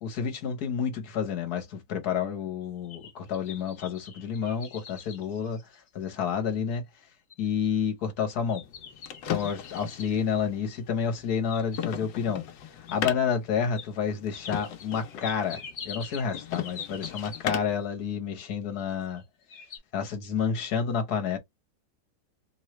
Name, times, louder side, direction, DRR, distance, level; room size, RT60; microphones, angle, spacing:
voice 1, 0.0-5.6 5.9-6.8 7.4-8.6 9.3-12.4 12.9-19.2 19.9-21.4, left 7 dB, 60° left, 1.5 m, -29 dB
sound 1, 2.6-6.2 6.7-6.8 7.3-7.7 8.5-10.2 11.2-12.2 12.9-13.0 13.7-13.9 14.3-17.8 18.8-19.2 19.5-19.8, left 6 dB, 45° left, 1.2 m, -44 dB
sound 2, 8.6-17.9, left 9 dB, 90° left, 1.4 m, -38 dB
3.6 x 3.1 x 3.0 m
omnidirectional pair, 1.9 m